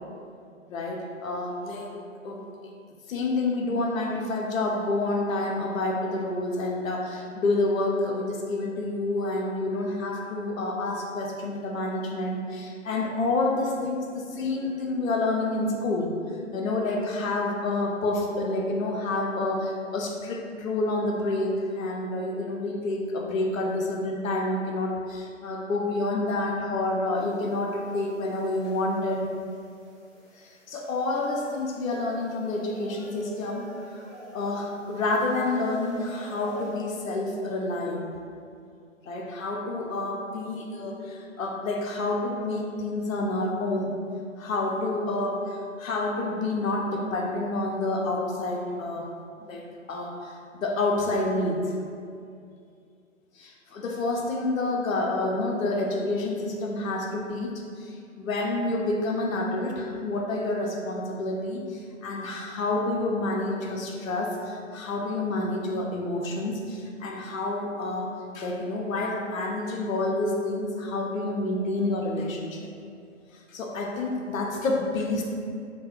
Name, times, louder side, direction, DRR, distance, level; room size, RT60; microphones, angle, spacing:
voice 1, 0.7-2.5 3.1-16.1 16.5-29.3 30.4-34.0 34.3-38.1 39.0-43.9 44.4-49.1 49.4-51.8 53.4-72.7 73.3-75.2, left 2 dB, 80° left, 0 dB, 0.6 m, -28 dB
sound 1, 27.1-36.8, equal, 15° left, 1.0 m, -49 dB
2.3 x 2.1 x 2.9 m, 2.4 s
hypercardioid pair, 135°, 39 cm